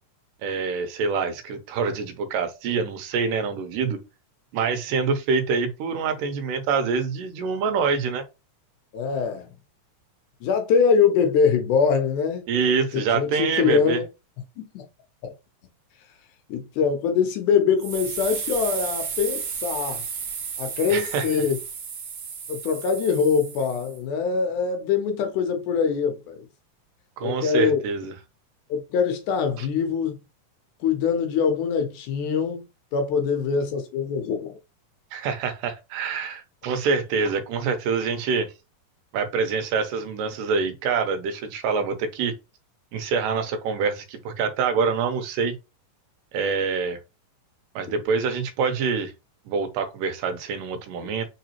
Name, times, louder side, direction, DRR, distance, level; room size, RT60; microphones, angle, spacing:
voice 1, 0.4-4.0 4.5-8.2 12.5-14.0 20.9-21.2 27.2-28.1 35.1-38.5 39.1-42.3 42.9-45.6 46.3-47.0 47.8-49.1 49.5-51.3, right 5 dB, 80° right, 2.3 m, -25 dB
voice 2, 8.9-9.5 10.4-12.4 12.9-14.0 14.6-14.8 15.2-15.3 16.5-20.0 20.6-21.6 22.5-26.4 27.2-27.8 28.7-30.2 30.8-32.6 32.9-34.6, left 6 dB, 75° left, 2.1 m, -23 dB
sound 1, 17.8-24.0, right 6 dB, 65° right, 1.4 m, -33 dB
4.8 x 3.8 x 2.9 m
omnidirectional pair, 3.9 m